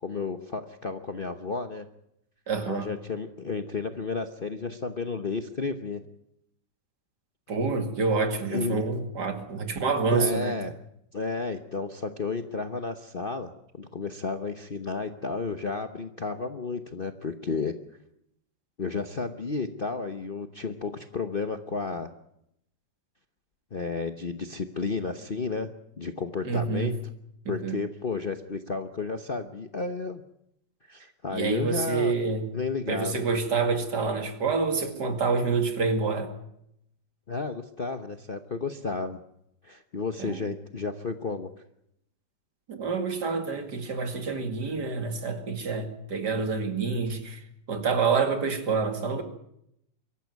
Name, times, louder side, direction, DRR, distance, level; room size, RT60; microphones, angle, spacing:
voice 1, 0.0-1.8 2.7-6.0 8.1-8.8 10.1-10.7 11.1-17.7 18.8-22.1 23.7-25.7 26.0-26.9 27.5-30.2 30.9-32.1 32.5-33.3 37.3-39.2 39.6-41.5, left 4 dB, 40° left, 8 dB, 0.9 m, -32 dB
voice 2, 2.5-2.9 7.5-10.7 26.4-26.9 27.4-27.8 31.3-32.5 32.9-36.3 40.2-40.4 42.7-49.2, right 4 dB, 60° right, 6 dB, 2.8 m, -27 dB
23.5 x 14.5 x 9.4 m, 0.78 s
omnidirectional pair, 2.0 m